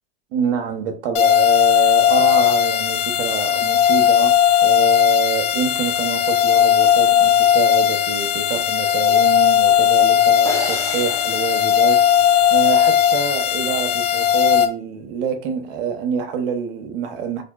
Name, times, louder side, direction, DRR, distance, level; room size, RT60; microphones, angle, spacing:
voice 1, 0.3-12.1 12.5-17.4, right 6 dB, 70° right, 0.8 m, -26 dB
sound 1, 1.1-14.7, left 9 dB, 70° left, 0.6 m, -17 dB
sound 2, 10.4-12.8, equal, 10° left, 0.7 m, -32 dB
3.4 x 2.6 x 2.3 m
hypercardioid pair, 95°, 29 cm